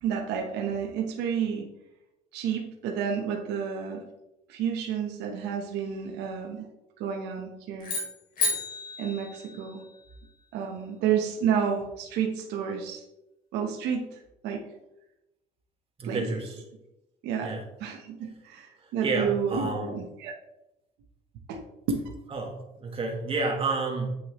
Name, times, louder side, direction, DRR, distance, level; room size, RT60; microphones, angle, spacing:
voice 1, 0.0-1.7 2.3-4.0 4.5-6.7 7.0-7.9 9.0-9.8 10.5-13.0 13.5-14.6 16.0-16.2 17.2-20.3 21.5-21.6 21.9-22.0, right 7 dB, 85° right, 2 dB, 1.1 m, -30 dB
sound 1, 7.8-10.1, left 3 dB, 60° left, 2.9 m, -32 dB
voice 2, 16.0-16.6 17.4-17.6 18.8-20.0 22.3-24.1, right 3 dB, 35° right, 0 dB, 1.8 m, -30 dB
8.3 x 6.1 x 3.1 m, 0.91 s
cardioid pair, 110°, 17 cm